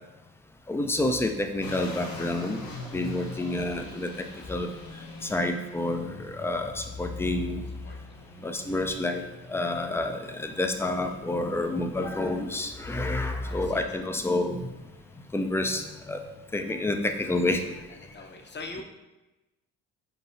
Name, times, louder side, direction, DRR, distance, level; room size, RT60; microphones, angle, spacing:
voice 1, 0.7-2.7 2.9-4.1 4.5-4.7 5.2-7.6 8.4-9.2 9.5-14.7 15.3-16.2 16.5-17.6 18.8-18.9, left 2 dB, 5° left, 6 dB, 0.3 m, -29 dB
sound 1, 1.6-18.1, left 2 dB, 60° left, 1.0 m, -46 dB
voice 2, 7.8-8.2 13.5-14.0 17.9-18.8, left 3 dB, 25° left, 3 dB, 0.7 m, -43 dB
4.0 x 4.0 x 2.7 m, 1.0 s
hypercardioid pair, 55°, 40 cm